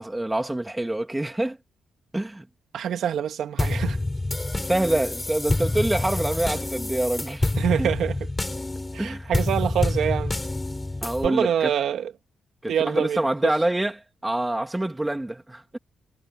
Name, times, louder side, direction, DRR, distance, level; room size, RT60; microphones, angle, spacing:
voice 1, 0.0-1.6 2.1-2.5 4.7-7.5 7.8-7.9 9.0-9.3 11.0-11.7 12.6-13.9 14.2-15.8, right 1 dB, 10° right, 2.9 m, -26 dB
voice 2, 2.7-4.0 7.6-8.3 8.9-10.3 11.2-12.1 12.7-13.2, right 9 dB, 75° right, 2.2 m, -25 dB
sound 1, 3.6-11.3, left 2 dB, 15° left, 3.8 m, -27 dB
cardioid pair, 105°, 0 cm